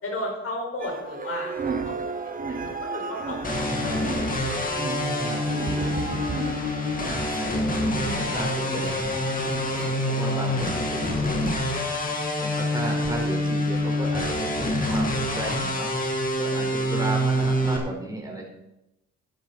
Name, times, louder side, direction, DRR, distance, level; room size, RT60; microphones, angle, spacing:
voice 1, 0.0-2.2 2.5-4.0, left 1 dB, 50° left, 0 dB, 5.2 m, -34 dB
sound 1, 0.8-11.7 12.3-12.4 13.0-13.2 13.4-13.5 13.8-14.3 14.6-15.0 15.3-15.6, right 4 dB, 30° right, 1.2 m, -35 dB
sound 2, 3.4-17.8, left 1 dB, 30° left, 2.6 m, -26 dB
voice 2, 3.5-4.4 4.7-6.1 7.0-9.2 9.9-11.5 12.4-15.9 16.3-18.4, right 1 dB, 10° right, -1 dB, 4.6 m, -34 dB
11.5 x 11.5 x 4.2 m, 0.86 s
cardioid pair, 90°, 30 cm